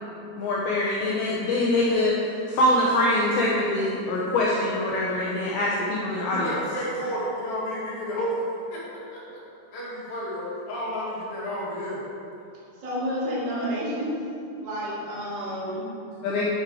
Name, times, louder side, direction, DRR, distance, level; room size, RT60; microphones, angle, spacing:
voice 1, 0.4-2.1 2.5-6.5 16.2-16.5, left 1 dB, 90° left, -5 dB, 2.1 m, -24 dB
voice 2, 6.2-8.5 8.7-9.4 9.7-12.0, equal, 55° left, -8 dB, 3.6 m, -31 dB
voice 3, 12.7-14.1 14.6-16.2, equal, 35° right, -8 dB, 2.0 m, -30 dB
9.4 x 6.8 x 4.7 m, 2.6 s
omnidirectional pair, 5.6 m